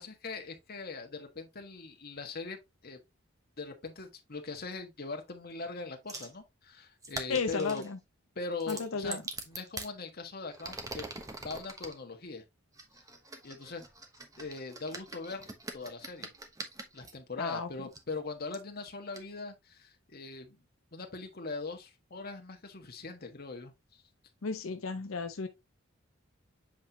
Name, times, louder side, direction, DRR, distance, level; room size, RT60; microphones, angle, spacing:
voice 1, 0.0-3.0 3.6-7.8 8.3-11.1 11.4-12.4 13.4-13.9 14.4-15.5 15.7-16.3 16.9-20.6 20.9-23.7, left 3 dB, 50° left, 1.4 m, -41 dB
sound 1, 6.1-6.3 7.0-7.9 8.6-9.9 10.5-11.9 12.8-17.1 17.9-18.0 18.5-18.6 19.1-19.2, right 2 dB, 15° right, 1.1 m, -43 dB
voice 2, 7.3-8.0 8.7-9.2 17.4-17.7 24.4-25.5, left 4 dB, 85° left, 0.7 m, -33 dB
7.5 x 4.3 x 2.9 m
head